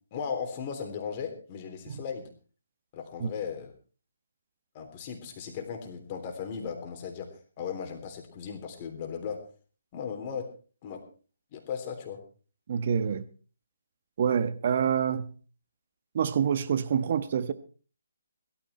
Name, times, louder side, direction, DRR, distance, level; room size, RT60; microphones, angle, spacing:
voice 1, 0.1-2.3 2.9-3.7 4.7-7.3 7.6-9.4 9.9-10.5 10.8-11.0 11.5-12.2, left 6 dB, 30° left, 3.4 m, -36 dB
voice 2, 12.7-13.2 14.2-15.3 16.1-17.5, right 7 dB, 45° right, 1.2 m, -27 dB
17.0 x 13.5 x 4.4 m
figure-of-eight pair, 145°, 0 cm